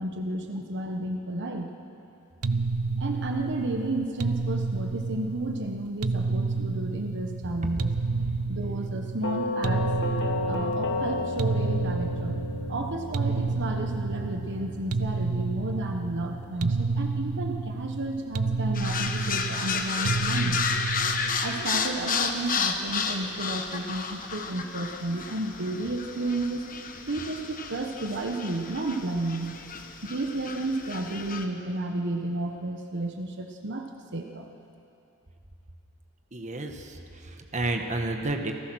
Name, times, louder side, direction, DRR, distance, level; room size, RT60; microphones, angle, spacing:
voice 1, 0.0-1.7 3.0-7.9 8.5-9.9 10.5-12.4 12.7-20.6 21.4-26.6 27.0-29.6 30.0-33.9 34.1-34.5, right 2 dB, 55° right, 4 dB, 1.2 m, -32 dB
sound 1, 2.4-21.7, right 3 dB, 85° right, 0.7 m, -30 dB
Doorbell, 9.2-18.1, left 2 dB, 55° left, 1.3 m, -34 dB
sound 2, 18.7-31.5, left 5 dB, 40° left, 1.2 m, -32 dB
voice 2, 36.3-37.0 37.2-38.5, right 2 dB, 35° right, 4 dB, 1.3 m, -31 dB
28.0 x 15.0 x 6.3 m, 2.7 s
head